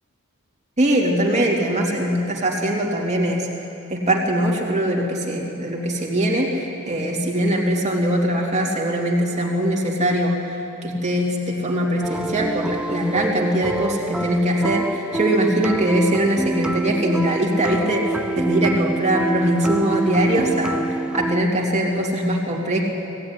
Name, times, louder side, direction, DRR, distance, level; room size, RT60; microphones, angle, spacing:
voice 1, 0.8-3.5 3.9-10.6 10.8-22.8, right 1 dB, 30° right, -1 dB, 2.9 m, -21 dB
sound 1, 12.0-21.4, right 2 dB, 5° right, 0.4 m, -26 dB
18.5 x 16.0 x 9.8 m, 2.9 s
head